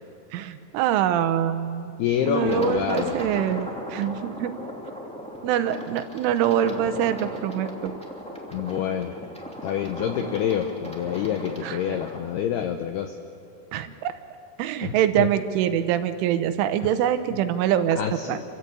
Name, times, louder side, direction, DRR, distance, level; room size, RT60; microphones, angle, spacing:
voice 1, 0.3-1.9 2.3-4.5 5.4-7.9 11.6-12.0 13.7-14.1 14.6-18.0 18.3-18.4, right 10 dB, 85° right, 10 dB, 3.3 m, -24 dB
voice 2, 2.0-3.2 8.5-9.2 9.6-13.2 14.8-15.3 16.8-16.9 17.9-18.4, left 9 dB, 90° left, 6 dB, 2.3 m, -27 dB
sound 1, 2.4-12.2, equal, 10° left, 0.3 m, -36 dB
27.0 x 16.0 x 8.4 m, 2.5 s
omnidirectional pair, 5.7 m